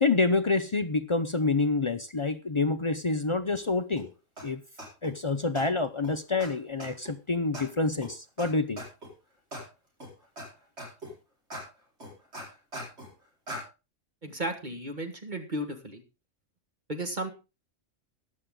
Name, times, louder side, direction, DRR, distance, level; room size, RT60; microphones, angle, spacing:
voice 1, 0.0-4.1 4.4-4.6 5.0-8.8, left 3 dB, 45° left, 10 dB, 0.4 m, -27 dB
sound 1, 4.0-4.1 4.4-4.5 4.8-5.1 5.6-5.7 6.0-6.1 6.4-6.5 6.8-7.1 7.5-7.6 8.0-8.1 8.4-8.5 8.8-9.1 9.5-9.6 10.0-10.5 10.8-11.1 11.5-11.6 12.0-13.1 13.5-13.6, equal, 50° right, 4.8 m, -39 dB
voice 2, 14.2-16.0 16.9-17.3, right 1 dB, 35° right, 6 dB, 1.7 m, -34 dB
14.5 x 10.5 x 3.7 m, 0.29 s
omnidirectional pair, 1.4 m